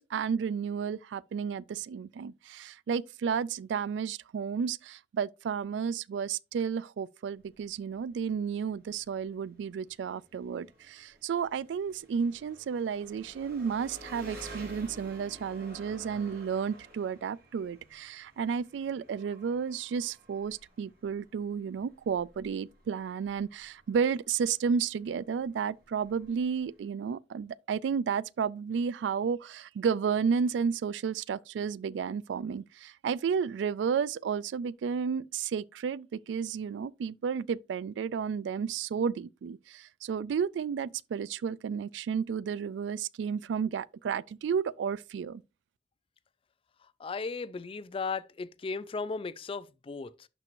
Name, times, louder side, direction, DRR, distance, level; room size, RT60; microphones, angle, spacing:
voice 1, 0.0-45.4, right 6 dB, 85° right, 0.3 m, -32 dB
Engine, 7.3-26.9, right 1 dB, 60° right, 4.5 m, -52 dB
voice 2, 47.0-50.3, left 4 dB, 30° left, 0.4 m, -36 dB
11.5 x 4.5 x 2.5 m
head